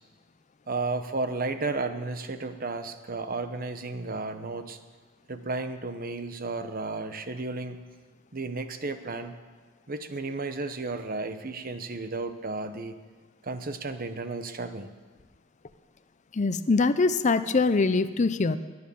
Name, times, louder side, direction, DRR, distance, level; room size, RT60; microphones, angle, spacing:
voice 1, 0.7-4.8 5.3-7.8 8.3-9.3 9.9-13.0 13.4-14.9, right 3 dB, 45° right, 9 dB, 1.0 m, -33 dB
voice 2, 16.3-18.6, left 3 dB, 35° left, 11 dB, 0.5 m, -23 dB
21.0 x 9.6 x 7.0 m, 1.4 s
head